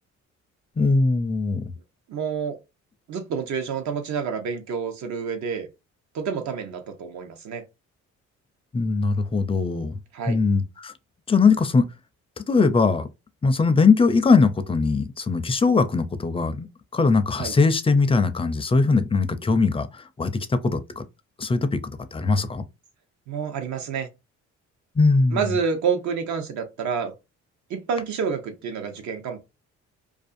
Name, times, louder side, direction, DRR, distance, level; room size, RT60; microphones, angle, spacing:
voice 1, 0.8-1.6 8.7-10.0 10.3-10.9 11.3-11.9 12.5-13.1 13.4-16.7 16.9-21.0 21.4-21.8 22.1-22.7 25.0-25.4, left 4 dB, 20° left, 0.4 m, -21 dB
voice 2, 2.1-2.6 3.1-5.7 6.1-7.6 10.1-10.4 17.4-17.5 23.3-24.1 25.3-27.1 27.7-29.4, right 6 dB, 70° right, 0.8 m, -28 dB
2.5 x 2.4 x 2.5 m
cardioid pair, 90°, 30 cm